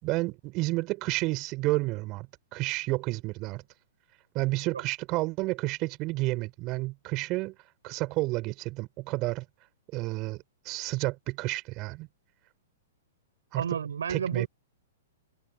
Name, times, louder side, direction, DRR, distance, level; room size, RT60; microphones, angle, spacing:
voice 1, 0.0-2.3 2.5-3.6 4.3-7.5 7.8-9.4 9.9-12.1 13.5-13.6 14.1-14.5, right 21 dB, 35° right, 4.3 m, -30 dB
voice 2, 13.6-14.5, right 7 dB, 70° right, 4.5 m, -31 dB
figure-of-eight pair, 110°, 0 cm